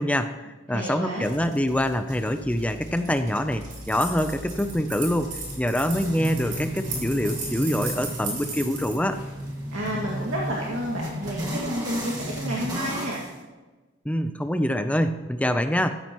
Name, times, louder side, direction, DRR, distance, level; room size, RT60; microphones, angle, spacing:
voice 1, 0.0-9.2 14.0-15.9, equal, 5° left, 8 dB, 0.5 m, -25 dB
voice 2, 0.7-1.3 9.7-13.2, equal, 75° right, -5 dB, 2.2 m, -30 dB
sound 1, 1.2-13.3, equal, 20° right, 1.7 m, -35 dB
sound 2, 3.7-9.9, right 3 dB, 45° right, 5.1 m, -36 dB
15.0 x 14.5 x 3.1 m, 1.2 s
head